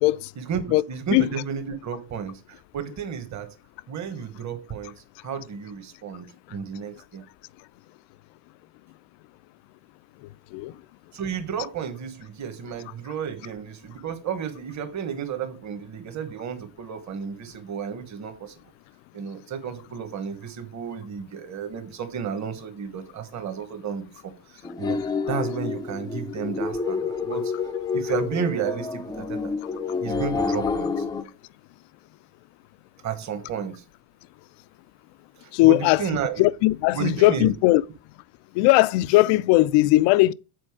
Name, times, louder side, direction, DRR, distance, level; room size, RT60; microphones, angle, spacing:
voice 1, 0.4-3.5 3.9-7.2 11.1-18.5 19.1-25.0 25.3-27.5 27.9-29.5 30.0-31.0 33.0-33.8 35.4-36.5 36.9-37.5, right 7 dB, 35° right, 1.3 m, -32 dB
sound 1, 24.6-31.2, left 4 dB, 10° left, 0.4 m, -28 dB
voice 2, 35.5-36.0 36.4-37.8 38.6-40.3, left 18 dB, 60° left, 0.5 m, -18 dB
7.8 x 4.3 x 4.8 m
supercardioid pair, 120°, 48 cm